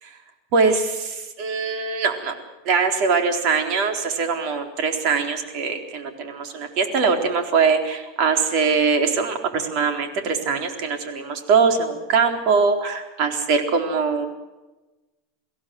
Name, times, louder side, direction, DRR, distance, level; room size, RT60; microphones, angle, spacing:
voice 1, 0.5-2.4 2.6-14.3, right 5 dB, 50° right, 5 dB, 4.0 m, -22 dB
23.0 x 16.5 x 7.9 m, 1.1 s
supercardioid pair, 140°, 0 cm